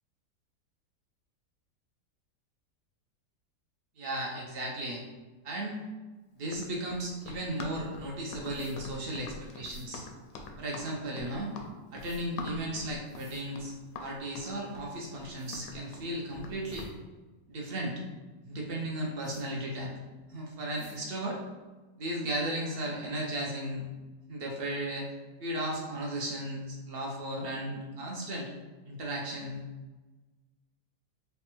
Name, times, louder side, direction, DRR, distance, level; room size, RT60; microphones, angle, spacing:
voice 1, 4.0-5.0 5.4-5.8 6.3-10.0 10.6-11.5 11.9-13.7 14.0-16.9 17.5-18.0 18.4-19.9 20.3-21.4 22.0-23.9 24.3-25.1 25.4-28.5 28.9-29.6, right 1 dB, 75° right, -2 dB, 0.5 m, -35 dB
Run, 6.4-17.0, left 3 dB, 90° left, 1.2 m, -44 dB
sound 1, 8.5-8.8 9.6-9.9 12.0-12.2 13.0-13.4 14.9-15.0 15.4-15.6 16.3-16.4 16.6-16.9 19.2-19.4 20.7-21.0, right 2 dB, 45° right, 0.8 m, -57 dB
3.4 x 2.2 x 4.3 m, 1.2 s
omnidirectional pair, 1.8 m